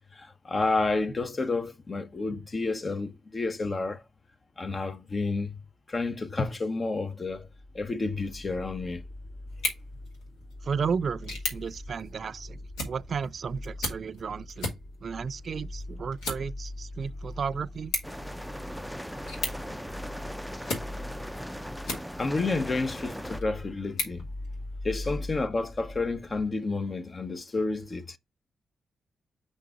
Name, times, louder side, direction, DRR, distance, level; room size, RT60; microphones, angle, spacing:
voice 1, 0.1-4.0 4.6-5.6 5.9-7.5 7.7-9.0 19.7-19.8 22.2-24.3 24.8-28.2, left 3 dB, 40° left, 0.9 m, -30 dB
sound 1, 7.3-26.5, left 1 dB, 60° left, 2.8 m, -42 dB
sound 2, 9.5-22.5 23.0-25.0, left 2 dB, 90° left, 2.1 m, -39 dB
voice 2, 10.6-14.7 15.0-17.9, right 6 dB, 60° right, 0.4 m, -33 dB
sound 3, 18.0-23.4, equal, ahead, 0.4 m, -39 dB
5.3 x 3.8 x 4.9 m
supercardioid pair, 45°, 0 cm